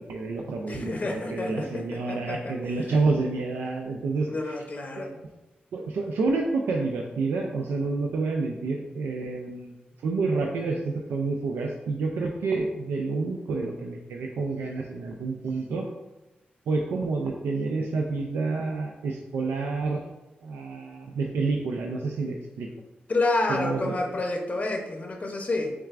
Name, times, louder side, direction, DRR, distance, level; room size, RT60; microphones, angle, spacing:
voice 1, 0.0-4.5 4.9-5.1 5.7-9.7 10.0-15.9 16.7-20.0 20.4-22.7 23.5-24.0, right 3 dB, 90° right, 0 dB, 0.4 m, -29 dB
voice 2, 0.7-2.5 4.3-5.2 23.1-25.7, left 2 dB, 45° left, 2 dB, 0.6 m, -29 dB
6.4 x 3.4 x 2.4 m, 1.1 s
cardioid pair, 65°, 4 cm